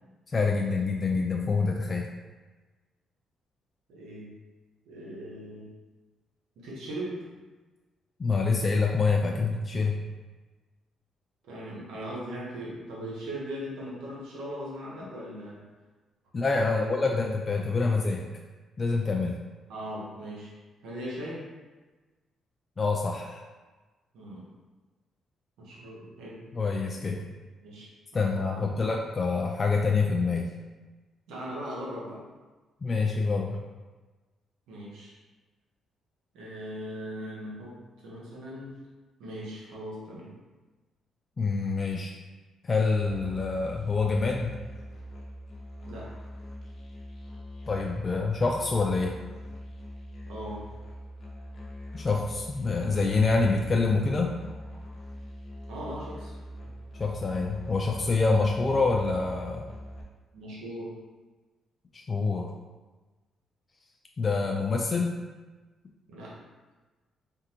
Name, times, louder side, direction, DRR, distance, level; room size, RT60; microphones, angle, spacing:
voice 1, 0.3-2.1 8.2-10.0 16.3-18.2 18.8-19.4 22.8-23.4 26.5-27.2 28.1-30.5 32.8-33.6 41.4-42.2 42.6-44.5 47.7-49.1 51.9-54.4 56.9-59.7 61.9-62.5 64.2-65.2, left 4 dB, 35° left, 0 dB, 0.4 m, -26 dB
voice 2, 3.9-4.3 4.8-5.7 6.6-7.3 11.5-15.6 16.6-16.9 19.7-20.5 20.8-21.4 24.1-24.4 25.6-26.4 27.6-29.0 31.3-32.2 34.7-35.1 36.3-37.8 38.0-38.7 39.2-40.3 45.9-46.1 50.3-50.6 55.7-56.3 56.6-56.7 60.3-60.9 66.1-66.4, equal, 85° right, -5 dB, 1.2 m, -39 dB
Musical instrument, 43.0-60.0, equal, 50° left, 0.9 m, -43 dB
3.5 x 3.5 x 2.9 m, 1.2 s
cardioid pair, 90°, 0 cm